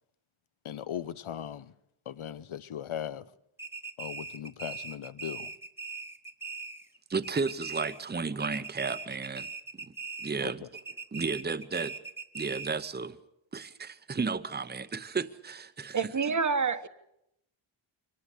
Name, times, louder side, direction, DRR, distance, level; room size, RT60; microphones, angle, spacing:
voice 1, 0.6-1.7 2.1-3.3 4.0-5.5 10.4-10.5, left 10 dB, 90° left, 1.0 m, -38 dB
sound 1, 3.6-7.0 7.2-8.1 8.4-10.4 10.7-12.9, right 4 dB, 5° right, 1.1 m, -41 dB
voice 2, 7.1-9.9 10.2-10.7 11.1-11.9 12.3-13.2 13.5-16.1, right 4 dB, 20° right, 0.8 m, -33 dB
voice 3, 15.9-16.9, right 5 dB, 40° right, 1.1 m, -27 dB
24.5 x 18.5 x 8.3 m
wide cardioid pair, 160°, 48 cm